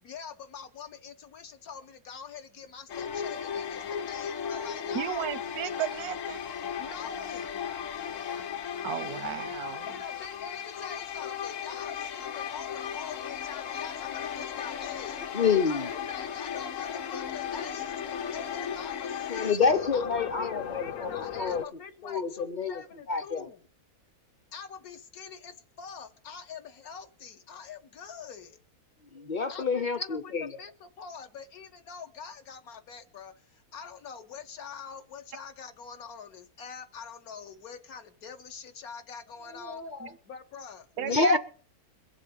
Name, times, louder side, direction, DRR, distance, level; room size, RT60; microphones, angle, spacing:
voice 1, 0.0-5.3 6.8-7.6 9.9-15.2 15.7-19.6 19.9-23.6 24.5-28.6 29.5-39.8 40.3-41.4, left 6 dB, 75° left, 1.6 m, -44 dB
sound 1, 2.9-21.6, left 8 dB, 60° left, 1.2 m, -36 dB
voice 2, 4.9-6.4 8.8-9.9 29.2-29.3 40.0-40.1 41.0-41.4, right 10 dB, 85° right, 1.3 m, -34 dB
voice 3, 15.3-15.9 19.3-21.6 22.0-22.8 23.1-23.5 29.1-30.6 39.6-40.1 41.0-41.4, left 5 dB, 45° left, 0.7 m, -28 dB
22.5 x 7.5 x 5.3 m
omnidirectional pair, 1.6 m